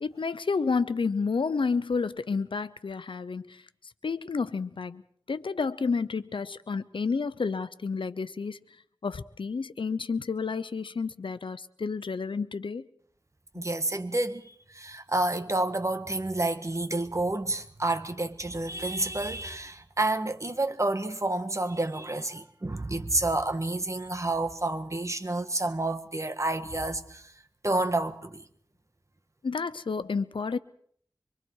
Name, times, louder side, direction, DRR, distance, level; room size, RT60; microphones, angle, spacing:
voice 1, 0.0-3.6 4.0-5.0 5.3-8.6 9.0-12.9 13.5-13.6 29.4-30.6, left 4 dB, 90° left, 0.8 m, -30 dB
voice 2, 13.5-27.3 27.6-28.4, right 2 dB, 35° right, 1.5 m, -29 dB
25.0 x 23.5 x 4.7 m
wide cardioid pair, 60°, 8 cm